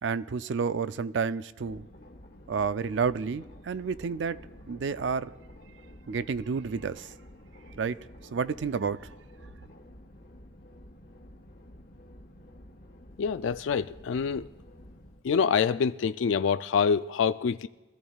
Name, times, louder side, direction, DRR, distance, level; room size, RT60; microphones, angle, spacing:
voice 1, 0.0-1.9 2.5-5.3 6.1-7.2 7.8-8.0 8.3-9.1, right 5 dB, 75° right, 0.4 m, -30 dB
sound 1, 1.6-15.2, left 1 dB, 55° left, 1.2 m, -51 dB
voice 2, 13.2-14.5 15.2-17.7, left 6 dB, 85° left, 0.3 m, -26 dB
24.0 x 14.0 x 2.3 m
head